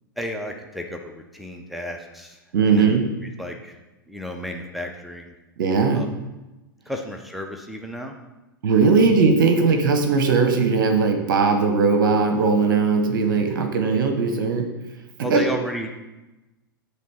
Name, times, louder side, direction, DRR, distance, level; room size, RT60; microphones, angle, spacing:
voice 1, 0.2-3.0 3.4-3.8 4.1-5.3 5.9-6.1 6.9-8.1 8.9-9.0 15.2-15.9, equal, ahead, 2 dB, 0.7 m, -33 dB
voice 2, 2.5-3.0 5.6-6.1 8.6-14.6 15.3-15.4, right 4 dB, 65° right, 6 dB, 0.9 m, -19 dB
7.5 x 3.5 x 5.7 m, 1.0 s
figure-of-eight pair, 100°, 12 cm